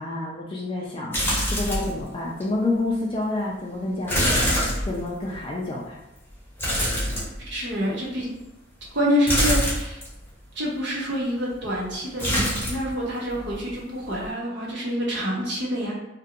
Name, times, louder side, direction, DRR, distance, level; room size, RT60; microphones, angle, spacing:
voice 1, 0.0-6.0, left 2 dB, 25° left, -3 dB, 0.3 m, -29 dB
sound 1, 1.1-2.0 2.4-2.5 4.1-5.4 6.6-7.7 9.3-10.1 12.2-12.9 13.2-13.8 14.1-14.3, equal, 10° left, 0.8 m, -24 dB
voice 2, 7.5-8.3 8.9-10.0 10.6-15.9, equal, 65° right, -4 dB, 0.8 m, -27 dB
2.5 x 2.1 x 2.8 m, 0.95 s
head